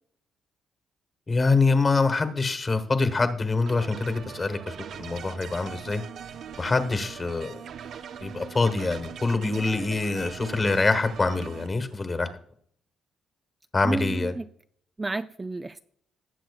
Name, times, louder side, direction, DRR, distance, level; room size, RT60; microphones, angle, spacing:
voice 1, 1.3-6.0 6.6-7.6 8.2-12.3 13.7-14.3, left 3 dB, 30° left, 1.3 m, -25 dB
sound 1, 3.7-11.7, right 8 dB, 65° right, 0.6 m, -41 dB
voice 2, 13.8-14.5 15.0-15.8, right 2 dB, 20° right, 0.3 m, -31 dB
19.0 x 7.6 x 2.4 m
cardioid pair, 90°, 0 cm